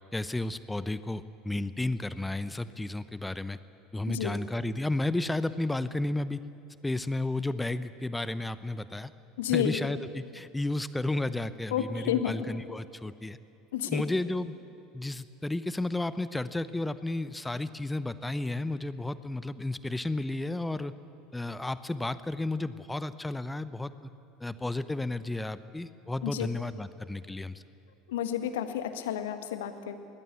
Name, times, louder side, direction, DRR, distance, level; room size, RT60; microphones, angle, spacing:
voice 1, 0.1-3.6 3.9-6.4 6.8-9.1 9.5-13.4 13.9-14.5 14.9-20.9 21.3-23.9 24.4-27.6, left 2 dB, 10° left, 15 dB, 0.8 m, -32 dB
voice 2, 4.1-4.4 9.4-9.8 11.7-12.3 13.7-14.0 26.2-26.5 28.1-30.0, left 10 dB, 70° left, 9 dB, 1.5 m, -30 dB
24.5 x 20.0 x 8.4 m, 2.6 s
figure-of-eight pair, 70°, 0 cm